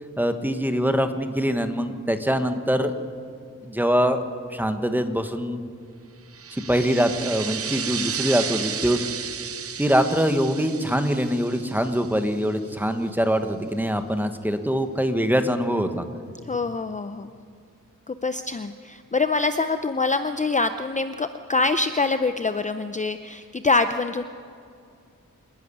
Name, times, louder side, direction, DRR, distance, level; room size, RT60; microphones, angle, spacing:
voice 1, 0.2-2.9 3.6-4.2 4.5-5.6 6.5-9.0 9.8-16.1, equal, 5° right, 8 dB, 1.2 m, -23 dB
sound 1, 6.3-12.6, right 7 dB, 45° right, 0.6 m, -33 dB
voice 2, 16.5-17.3 18.1-24.2, left 3 dB, 25° left, 10 dB, 0.5 m, -25 dB
27.5 x 11.0 x 10.0 m, 2.4 s
wide cardioid pair, 135°, 31 cm